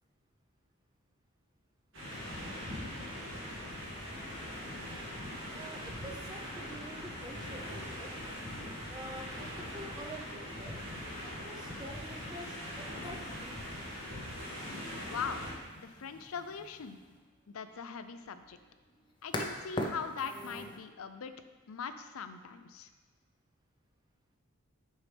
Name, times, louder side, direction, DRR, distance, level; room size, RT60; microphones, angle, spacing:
sound 1, 1.9-15.5, equal, 60° right, 2.2 m, -41 dB
voice 1, 5.5-8.4 8.9-10.8 11.2-13.6, right 1 dB, 20° right, 1 dB, 0.7 m, -48 dB
sound 2, 12.1-20.8, left 1 dB, 20° left, 0.6 m, -44 dB
voice 2, 15.1-15.5 15.7-17.0 17.5-18.6 19.2-21.3 21.7-22.9, left 6 dB, 75° left, 10 dB, 0.5 m, -41 dB
9.0 x 5.6 x 3.4 m, 1.3 s
head